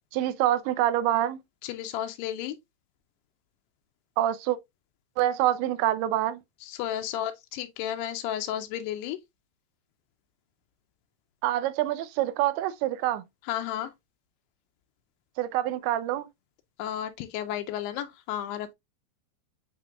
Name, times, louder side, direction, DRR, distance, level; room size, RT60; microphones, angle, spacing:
voice 1, 0.1-1.4 4.2-4.6 5.2-6.4 11.4-13.2 15.4-16.3, right 13 dB, 85° right, 2.5 m, -26 dB
voice 2, 1.6-2.6 6.6-9.2 13.5-13.9 16.8-18.7, left 11 dB, 85° left, 2.7 m, -33 dB
8.2 x 2.9 x 2.2 m
omnidirectional pair, 4.7 m